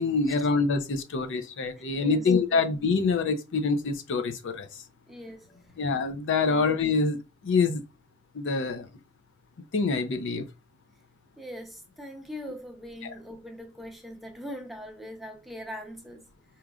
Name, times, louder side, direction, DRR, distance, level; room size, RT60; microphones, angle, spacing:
voice 1, 0.0-4.8 5.8-7.8 8.3-8.9 9.7-10.5 13.0-13.1, left 4 dB, 65° left, 0.5 m, -26 dB
voice 2, 2.0-2.6 5.1-5.7 11.4-16.2, equal, ahead, 0.7 m, -41 dB
4.8 x 2.9 x 2.4 m
head